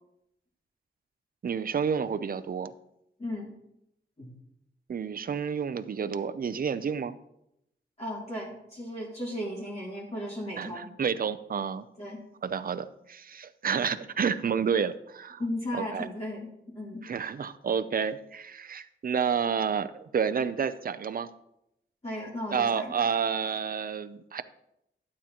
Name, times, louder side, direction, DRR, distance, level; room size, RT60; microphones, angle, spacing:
voice 1, 1.4-2.7 4.9-7.1 10.6-11.8 12.4-15.4 15.7-16.1 17.0-21.3 22.5-24.4, right 6 dB, 50° right, 11 dB, 0.5 m, -30 dB
voice 2, 8.0-10.9 12.0-12.2 15.4-16.5 16.7-17.0 22.0-23.1, left 1 dB, 35° left, -5 dB, 2.7 m, -35 dB
12.0 x 8.5 x 2.9 m, 0.81 s
wide cardioid pair, 115°, 20 cm